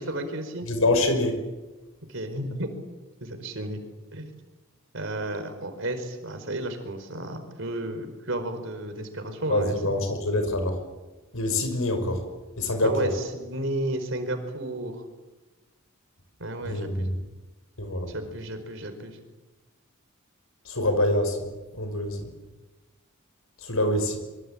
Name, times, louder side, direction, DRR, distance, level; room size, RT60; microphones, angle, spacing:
voice 1, 0.0-0.7 2.1-2.7 3.2-3.8 4.1-4.3 4.9-10.0 12.8-15.0 16.4-17.1 18.1-19.2, right 1 dB, 60° right, 7 dB, 4.6 m, -32 dB
voice 2, 0.7-1.3 9.5-10.8 11.3-12.2 12.6-13.1 16.6-17.1 17.8-18.1 20.7-21.5 21.7-22.3 23.6-24.2, left 1 dB, 80° left, 7 dB, 5.7 m, -25 dB
25.5 x 24.0 x 8.7 m, 1.2 s
head